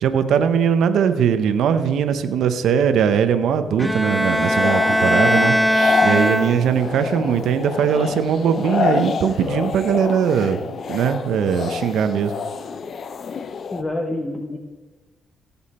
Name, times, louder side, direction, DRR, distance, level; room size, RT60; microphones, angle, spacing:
voice 1, 0.0-5.5 6.0-12.3, right 7 dB, 75° right, 9 dB, 0.8 m, -20 dB
Bowed string instrument, 3.8-7.0, equal, ahead, 0.7 m, -20 dB
sound 1, 4.3-13.8, left 5 dB, 50° left, 0.6 m, -27 dB
voice 2, 13.7-14.6, left 1 dB, 20° left, 2 dB, 1.0 m, -27 dB
17.0 x 7.2 x 4.3 m, 1.3 s
cardioid pair, 90°, 0 cm